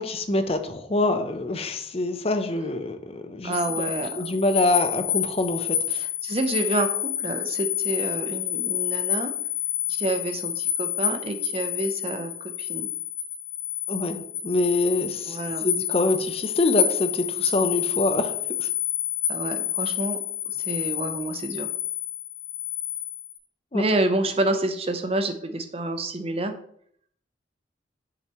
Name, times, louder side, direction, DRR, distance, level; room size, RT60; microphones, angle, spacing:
voice 1, 0.0-3.9 4.2-5.8 13.9-18.7 23.7-23.8, left 2 dB, 35° left, 8 dB, 0.7 m, -25 dB
voice 2, 3.4-4.1 5.9-9.3 9.9-12.9 15.3-15.6 19.3-20.2 20.5-21.7 23.7-26.5, right 2 dB, 30° right, 7 dB, 0.7 m, -28 dB
sound 1, 3.5-23.4, left 10 dB, 90° left, 2.0 m, -29 dB
7.2 x 6.9 x 3.0 m, 0.65 s
head